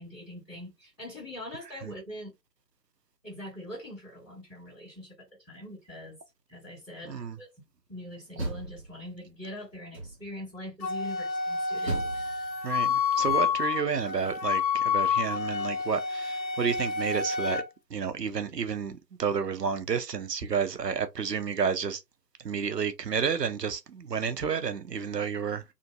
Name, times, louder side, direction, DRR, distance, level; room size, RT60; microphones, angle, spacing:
voice 1, 0.0-2.3 3.2-6.2 6.5-7.5 7.9-12.7, left 1 dB, ahead, 1.6 m, -43 dB
Door, 8.1-9.4 9.9-10.5 11.8-13.7, right 2 dB, 40° right, 1.2 m, -38 dB
Wind instrument woodwind instrument, 10.8-17.6, left 6 dB, 90° left, 0.6 m, -29 dB
voice 2, 12.6-17.6 17.9-22.0 22.4-25.7, right 6 dB, 75° right, 0.7 m, -30 dB
2.8 x 2.6 x 2.2 m
figure-of-eight pair, 160°, 50 cm